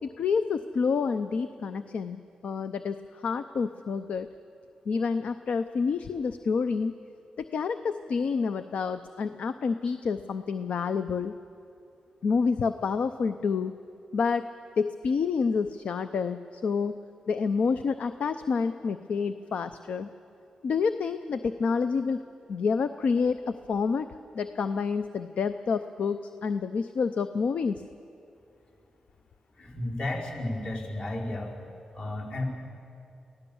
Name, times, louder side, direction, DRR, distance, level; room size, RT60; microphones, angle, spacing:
voice 1, 0.0-3.0 3.2-4.3 4.9-6.9 7.5-11.3 12.2-13.7 14.1-14.4 14.8-17.0 17.3-20.1 20.6-22.2 22.5-23.4 23.7-24.1 24.3-27.8, left 5 dB, 75° left, 10 dB, 0.6 m, -28 dB
voice 2, 29.6-31.5 31.9-32.4, left 1 dB, 55° left, -3 dB, 4.9 m, -33 dB
23.5 x 16.0 x 7.1 m, 2.6 s
cardioid pair, 70°, 2 cm